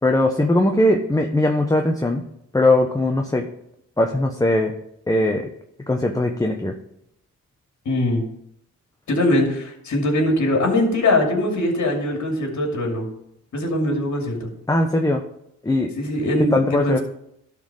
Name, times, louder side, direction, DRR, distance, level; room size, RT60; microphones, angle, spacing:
voice 1, 0.0-2.2 2.5-3.4 4.0-4.7 5.1-5.5 5.9-6.8 14.7-15.2 15.6-15.9 16.5-17.0, left 1 dB, 10° left, 3 dB, 0.9 m, -19 dB
voice 2, 7.8-8.2 9.1-13.1 13.5-14.5 16.0-17.0, left 1 dB, 65° left, 1 dB, 2.6 m, -21 dB
12.0 x 4.3 x 4.9 m, 0.75 s
cardioid pair, 65°, 31 cm